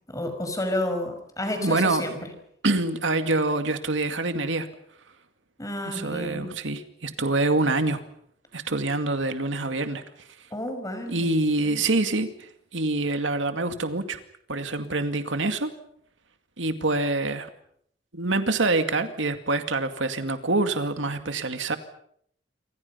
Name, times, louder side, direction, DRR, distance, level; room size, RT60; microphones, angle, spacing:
voice 1, 0.1-2.3 5.6-6.5 10.5-11.3 11.6-11.8, left 1 dB, 20° left, 7 dB, 5.3 m, -31 dB
voice 2, 1.6-2.1 2.6-4.7 5.9-8.0 8.5-10.0 11.1-12.3 12.7-14.2 14.5-15.7 16.6-17.5 18.1-21.8, right 2 dB, 85° right, 8 dB, 2.3 m, -25 dB
28.0 x 26.0 x 5.7 m, 0.68 s
head